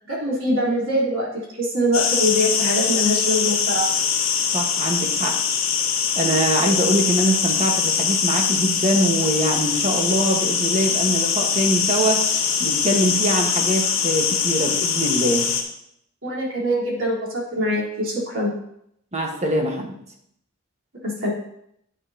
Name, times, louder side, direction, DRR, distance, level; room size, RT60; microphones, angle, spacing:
voice 1, 0.1-1.3 1.6-3.9 16.2-18.5 21.0-21.3, equal, 65° right, -5 dB, 3.8 m, -23 dB
sound 1, 1.9-15.6, left 6 dB, 70° left, 1.6 m, -22 dB
voice 2, 4.5-5.4 6.1-12.2 12.6-15.5 19.1-20.0, right 1 dB, 30° right, 2 dB, 1.5 m, -23 dB
10.5 x 9.4 x 2.9 m, 0.74 s
head